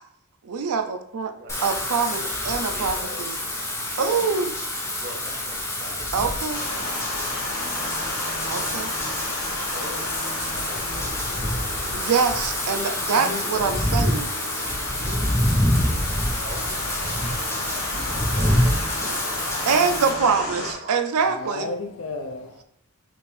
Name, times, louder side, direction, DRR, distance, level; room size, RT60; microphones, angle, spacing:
voice 1, 0.4-1.3 1.6-3.3 4.0-4.5 6.1-6.6 8.5-8.9 11.9-14.3 19.7-20.6 20.9-21.7, right 5 dB, 80° right, 0.5 m, -24 dB
voice 2, 1.3-2.3 2.7-3.3 3.8-4.5 5.0-6.5 8.2-8.7 9.6-10.2 10.7-12.2 14.2-16.0 16.4-17.0 17.4-20.0 20.3-21.0, right 1 dB, 45° right, 1.0 m, -42 dB
Wind / Rain, 1.5-20.1, left 1 dB, 10° left, 0.8 m, -27 dB
sound 1, 6.5-20.7, left 1 dB, 85° left, 1.4 m, -33 dB
voice 3, 13.0-13.8 21.3-22.6, left 3 dB, 60° left, 0.5 m, -33 dB
5.8 x 2.5 x 3.2 m
head